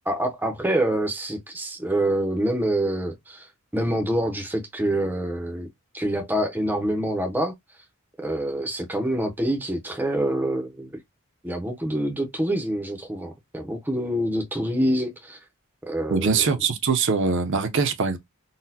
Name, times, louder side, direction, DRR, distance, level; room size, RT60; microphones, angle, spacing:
voice 1, 0.1-5.7 5.9-7.5 8.2-11.0 11.4-15.4 15.9-16.5, right 1 dB, 10° right, 0.6 m, -26 dB
voice 2, 16.1-18.2, right 5 dB, 60° right, 0.6 m, -22 dB
4.0 x 2.2 x 2.7 m
head